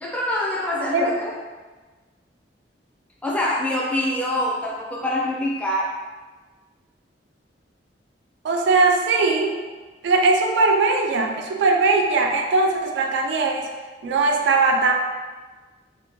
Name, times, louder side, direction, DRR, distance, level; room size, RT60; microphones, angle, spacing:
voice 1, 0.0-1.3 3.2-5.9, left 1 dB, 10° left, -4 dB, 0.4 m, -25 dB
voice 2, 8.4-9.5 10.0-13.6 14.0-14.9, right 3 dB, 70° right, 2 dB, 0.3 m, -20 dB
2.8 x 2.0 x 2.9 m, 1.3 s
head